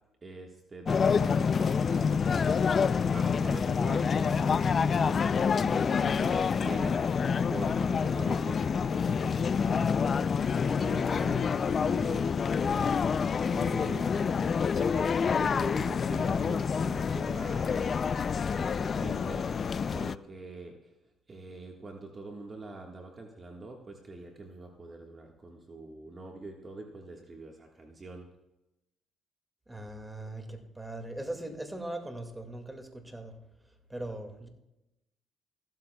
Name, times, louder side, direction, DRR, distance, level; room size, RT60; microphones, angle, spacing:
voice 1, 0.2-2.2 2.7-10.0 10.7-18.0 18.5-19.5 19.9-20.8 21.3-28.3, right 2 dB, 30° right, 1 dB, 1.4 m, -44 dB
sound 1, 0.9-20.1, left 6 dB, 45° left, 0.3 m, -27 dB
voice 2, 29.7-33.3 33.9-34.5, right 1 dB, 10° right, 4 dB, 1.9 m, -40 dB
15.5 x 12.5 x 2.3 m, 0.93 s
cardioid pair, 85°, 0 cm